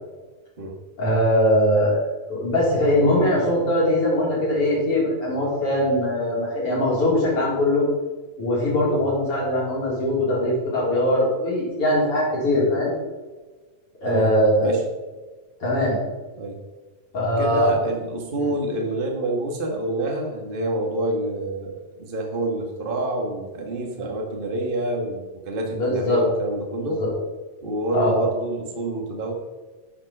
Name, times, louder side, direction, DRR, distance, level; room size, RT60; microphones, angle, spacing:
voice 1, 1.0-2.0 2.3-7.8 8.4-12.9 14.0-14.7 15.6-16.0 17.1-17.7 18.4-18.5 25.7-26.2 26.8-27.1 27.9-28.2, left 1 dB, 40° left, -5 dB, 4.5 m, -21 dB
voice 2, 17.4-27.0 27.6-29.3, right 1 dB, 35° right, 1 dB, 0.8 m, -27 dB
11.0 x 5.9 x 6.1 m, 1.3 s
omnidirectional pair, 3.9 m